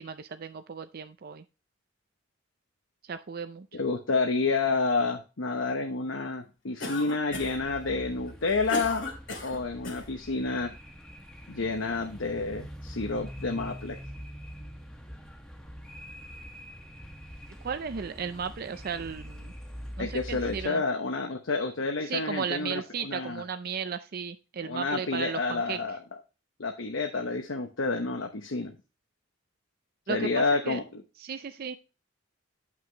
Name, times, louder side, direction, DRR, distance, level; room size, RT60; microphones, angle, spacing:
voice 1, 0.0-1.4 3.0-3.7 17.6-19.5 20.0-20.8 22.0-25.8 30.1-30.8 31.2-31.7, right 6 dB, 50° right, 9 dB, 0.5 m, -35 dB
voice 2, 3.7-9.1 9.4-10.7 11.5-14.0 20.0-23.4 24.6-26.0 26.6-28.8 30.1-31.0, left 3 dB, 90° left, 4 dB, 0.9 m, -29 dB
Cough, 6.8-7.7 8.3-10.1, left 2 dB, 70° left, 2.3 m, -36 dB
sound 1, 7.3-20.7, equal, 5° left, 1.3 m, -44 dB
9.5 x 5.9 x 3.0 m, 0.30 s
head